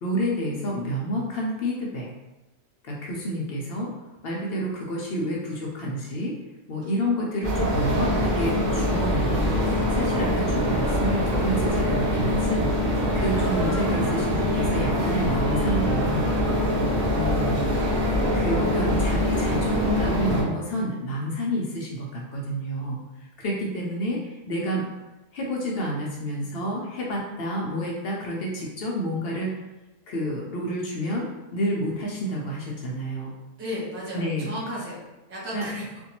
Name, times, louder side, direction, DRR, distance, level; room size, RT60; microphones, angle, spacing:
voice 1, 0.0-2.1 2.8-3.9 4.2-6.4 6.7-16.3 17.1-17.6 18.4-24.8 25.3-29.5 30.1-33.3 34.1-34.5 35.5-35.7, equal, 65° left, -2 dB, 0.6 m, -29 dB
sound 1, 7.4-20.4, left 1 dB, 45° right, 0.9 m, -24 dB
voice 2, 33.6-35.0 35.3-35.8, equal, 15° right, -8 dB, 0.4 m, -34 dB
2.5 x 2.2 x 2.8 m, 1.0 s
omnidirectional pair, 1.4 m